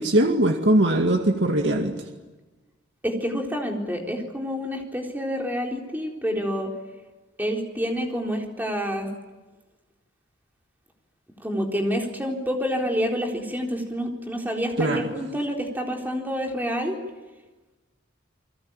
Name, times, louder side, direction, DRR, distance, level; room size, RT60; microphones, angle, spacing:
voice 1, 0.0-1.9 14.8-15.1, right 1 dB, 60° right, 3 dB, 2.2 m, -21 dB
voice 2, 3.0-6.7 7.4-9.1 11.4-17.0, equal, 10° right, 1 dB, 4.0 m, -28 dB
29.5 x 22.0 x 9.0 m, 1.2 s
head